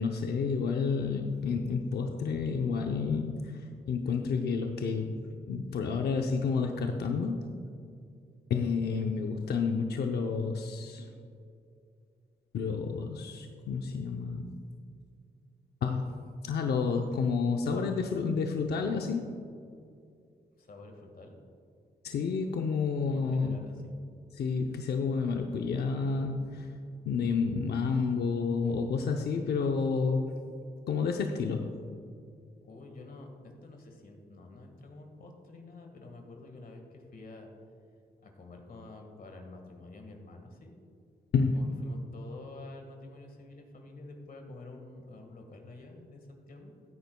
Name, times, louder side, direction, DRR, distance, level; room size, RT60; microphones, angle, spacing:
voice 1, 0.0-3.6 3.9-7.4 8.5-11.2 12.5-14.5 15.8-16.1 16.4-19.3 22.0-23.6 24.3-26.7 27.1-30.3 30.9-31.8 41.3-41.6, left 5 dB, 75° left, 3 dB, 0.6 m, -30 dB
voice 2, 20.6-21.3 23.1-23.9 32.6-37.5 38.2-40.8 41.5-46.7, left 2 dB, 60° left, 3 dB, 1.6 m, -49 dB
15.0 x 9.2 x 2.3 m, 2.4 s
cardioid pair, 70°, 17 cm